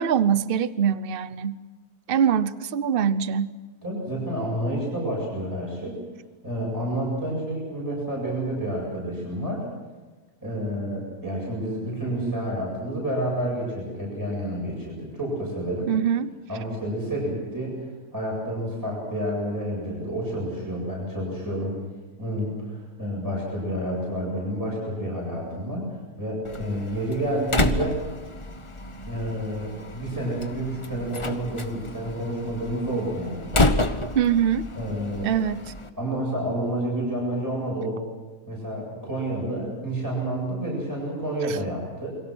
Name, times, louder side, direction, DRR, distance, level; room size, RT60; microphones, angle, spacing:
voice 1, 0.0-1.6 2.1-3.6 15.9-16.3 34.1-34.6 35.2-35.6 41.5-41.6, right 8 dB, 45° right, 15 dB, 0.9 m, -23 dB
voice 2, 3.8-6.0 6.4-9.6 10.4-15.9 16.5-17.8 18.1-21.8 22.2-25.9 26.2-28.0 29.0-33.8 34.7-35.3 36.0-38.0 38.5-42.1, right 1 dB, 10° right, -3 dB, 7.9 m, -29 dB
Slam, 26.4-35.9, left 2 dB, 20° left, 1.1 m, -29 dB
29.0 x 23.0 x 6.3 m, 1.3 s
omnidirectional pair, 1.7 m